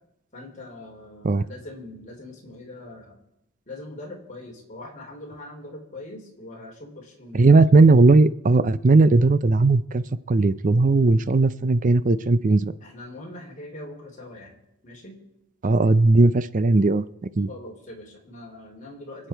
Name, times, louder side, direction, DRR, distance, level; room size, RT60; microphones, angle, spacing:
voice 1, 0.3-3.1 3.7-7.5 12.8-14.6 14.8-15.2 17.5-19.3, left 1 dB, 35° left, 0 dB, 3.7 m, -41 dB
voice 2, 7.3-12.7 15.6-17.1 17.4-17.5, right 3 dB, 35° right, 15 dB, 0.5 m, -17 dB
25.5 x 8.8 x 4.5 m, 0.84 s
head